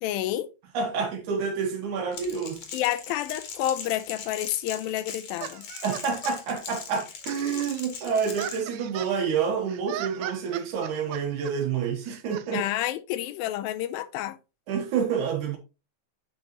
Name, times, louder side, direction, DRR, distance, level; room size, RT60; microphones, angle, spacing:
voice 1, 0.0-0.5 2.7-5.7 12.5-14.4, left 13 dB, 85° left, 2.3 m, -29 dB
voice 2, 0.7-2.6 5.8-12.6 14.7-15.6, right 6 dB, 65° right, 2.3 m, -28 dB
Crackle, 2.1-8.6, left 6 dB, 60° left, 2.2 m, -40 dB
sound 1, 5.4-6.4 7.0-9.2 9.7-11.5 12.0-12.5, right 14 dB, 90° right, 2.4 m, -38 dB
9.0 x 5.1 x 3.0 m
omnidirectional pair, 4.2 m